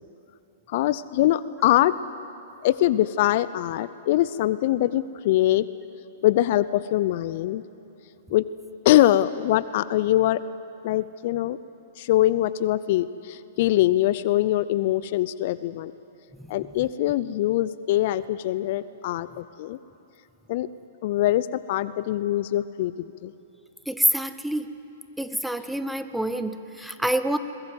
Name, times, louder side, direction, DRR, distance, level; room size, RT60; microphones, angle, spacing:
voice 1, 0.7-1.9 2.6-5.7 6.2-7.6 8.3-8.5 8.8-10.4 10.8-11.6 12.0-15.9 16.5-19.8 20.5-20.7 21.0-22.9 23.2-23.3, left 14 dB, 55° left, 17 dB, 0.6 m, -23 dB
voice 2, 23.9-24.7 25.2-27.4, right 1 dB, ahead, 10 dB, 1.0 m, -26 dB
22.5 x 20.5 x 7.8 m, 2.9 s
figure-of-eight pair, 110°, 0 cm